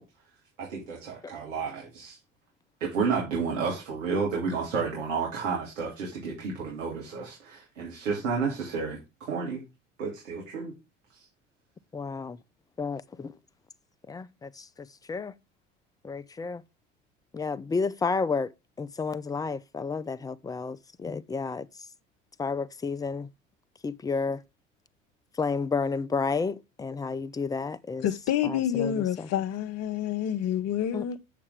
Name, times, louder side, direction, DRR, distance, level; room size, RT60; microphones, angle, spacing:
voice 1, 0.6-2.2 2.8-9.6 10.0-10.7 11.1-11.2, right 5 dB, 75° right, 2.8 m, -31 dB
voice 2, 11.9-12.4 12.8-13.3 14.1-15.3 16.0-16.6 17.3-18.5 18.8-21.9 22.4-23.3 23.8-24.4 25.3-28.1 28.4-29.3 30.9-31.2, left 4 dB, 10° left, 0.5 m, -31 dB
voice 3, 28.0-31.2, left 10 dB, 45° left, 0.8 m, -28 dB
8.4 x 6.7 x 3.4 m
figure-of-eight pair, 65°, 38 cm